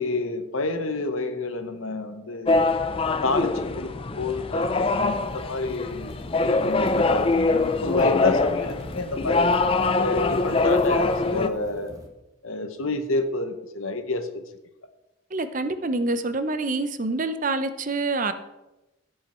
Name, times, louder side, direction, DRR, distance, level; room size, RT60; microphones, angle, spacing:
voice 1, 0.0-2.6 3.1-9.5 10.0-11.9 12.4-14.3, left 3 dB, 80° left, 8 dB, 1.1 m, -29 dB
sound 1, 2.5-11.5, left 3 dB, 25° left, 0.4 m, -23 dB
sound 2, 5.1-12.1, equal, 15° right, 1.2 m, -45 dB
voice 2, 15.3-18.3, right 3 dB, 40° right, 10 dB, 0.7 m, -26 dB
16.0 x 5.6 x 4.4 m, 1.0 s
head